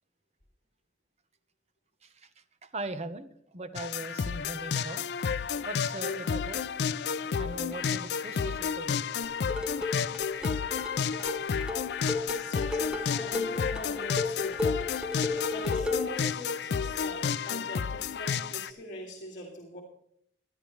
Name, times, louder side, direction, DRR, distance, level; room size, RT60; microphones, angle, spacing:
voice 1, 2.6-5.3 5.6-6.6 7.4-9.0, right 2 dB, 40° right, 10 dB, 0.9 m, -40 dB
sound 1, 3.8-18.7, left 6 dB, 65° left, 0.4 m, -31 dB
sound 2, 9.2-16.2, left 3 dB, 5° right, 1.0 m, -34 dB
voice 2, 12.3-14.7 15.5-19.8, left 1 dB, 50° left, -1 dB, 2.4 m, -42 dB
19.5 x 11.0 x 3.2 m, 0.68 s
head